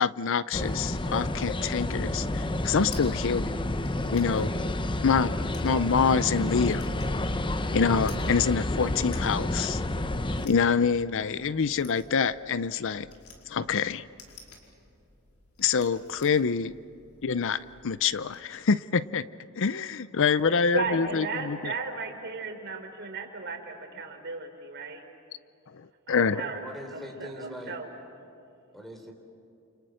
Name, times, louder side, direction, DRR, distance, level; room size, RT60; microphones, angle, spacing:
voice 1, 0.0-3.6 4.1-4.5 5.0-5.3 5.6-6.9 7.7-9.8 10.4-13.1 13.5-14.1 15.6-16.7 17.2-19.2 19.6-21.7 25.7-26.4, left 6 dB, 60° left, 16 dB, 0.6 m, -26 dB
sound 1, 0.5-10.5, left 1 dB, 20° left, 0.9 m, -30 dB
sound 2, 2.2-18.4, left 4 dB, 80° left, 5.0 m, -54 dB
voice 2, 20.7-25.1 26.1-27.9, right 4 dB, 55° right, 4 dB, 3.8 m, -35 dB
voice 3, 26.3-27.8 28.7-29.1, equal, ahead, 3 dB, 3.8 m, -41 dB
30.0 x 29.0 x 6.4 m, 2.8 s
head